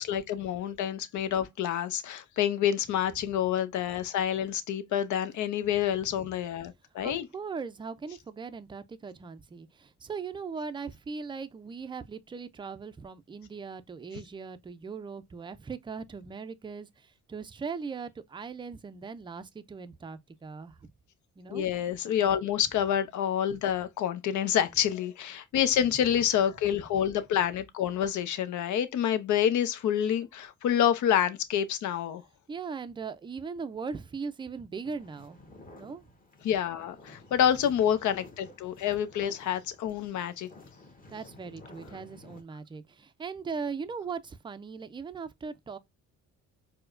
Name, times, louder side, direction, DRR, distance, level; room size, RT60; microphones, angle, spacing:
voice 1, 0.0-7.3 21.5-32.2 36.4-40.5, left 9 dB, 75° left, 0.7 m, -28 dB
voice 2, 7.0-20.8 21.4-21.7 32.5-35.4 35.8-36.1 41.1-45.8, right 5 dB, 15° right, 0.4 m, -39 dB
sound 1, 34.8-42.4, left 2 dB, 30° left, 1.1 m, -53 dB
4.5 x 2.1 x 2.4 m
cardioid pair, 90°, 30 cm